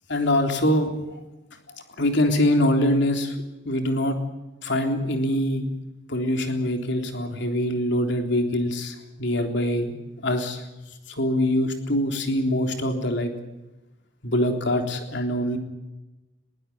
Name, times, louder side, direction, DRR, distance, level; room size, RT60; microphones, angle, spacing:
voice 1, 0.1-0.9 2.0-3.4 3.7-4.2 4.6-5.7 6.1-9.9 10.2-10.6 11.1-13.3 14.2-15.6, left 1 dB, 65° left, 5 dB, 3.6 m, -24 dB
22.0 x 16.0 x 9.9 m, 1.0 s
head